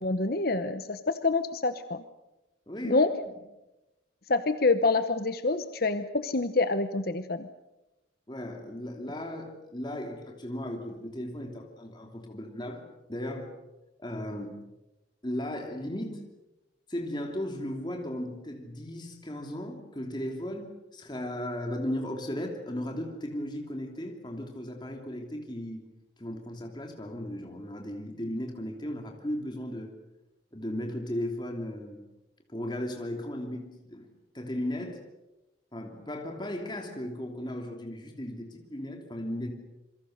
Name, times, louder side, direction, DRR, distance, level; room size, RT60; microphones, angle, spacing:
voice 1, 0.0-2.0 2.8-3.1 4.3-7.5, left 3 dB, 50° left, 10 dB, 0.9 m, -26 dB
voice 2, 2.7-3.0 8.3-12.8 13.1-13.5 14.0-14.6 15.2-16.2 16.9-25.8 26.2-29.9 30.5-32.0 32.5-34.1 34.3-35.0 35.7-39.5, left 1 dB, 25° left, 2 dB, 3.0 m, -36 dB
27.5 x 23.5 x 6.6 m, 0.99 s
head